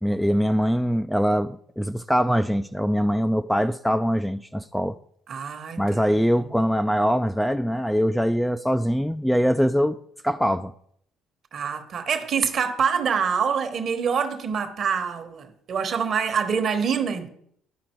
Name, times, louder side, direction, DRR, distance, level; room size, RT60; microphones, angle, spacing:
voice 1, 0.0-5.0 5.8-10.0 10.2-10.7, equal, ahead, 0.3 m, -23 dB
voice 2, 5.3-6.5 11.5-17.3, right 6 dB, 45° right, 1.1 m, -26 dB
11.5 x 5.1 x 4.4 m
cardioid pair, 115°, 0 cm